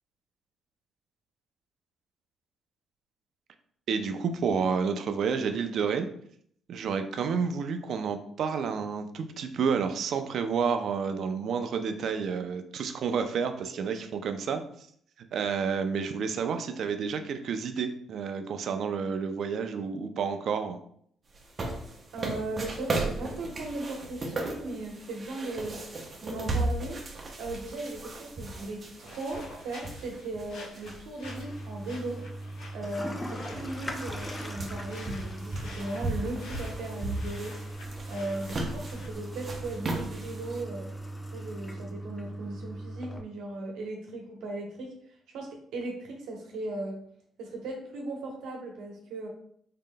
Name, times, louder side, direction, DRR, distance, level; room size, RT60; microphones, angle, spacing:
voice 1, 3.9-6.1 6.7-14.6 15.3-20.8, right 6 dB, 65° right, 7 dB, 0.4 m, -30 dB
sound 1, 21.3-31.4 31.8-31.9 32.8-32.9 33.2-40.6, right 2 dB, 40° right, 0.7 m, -36 dB
voice 2, 22.1-25.9 26.2-27.1 27.4-32.2 32.7-37.6 38.1-40.9 41.3-44.9 45.3-47.0 47.4-49.3, right 2 dB, 85° right, 0 dB, 0.9 m, -37 dB
sound 2, 28.4-39.1, left 2 dB, 90° left, 0.9 m, -49 dB
Toilet flush, 31.2-43.2, right 1 dB, 15° left, 0.5 m, -39 dB
3.7 x 3.7 x 2.2 m, 0.65 s
cardioid pair, 90°, 0 cm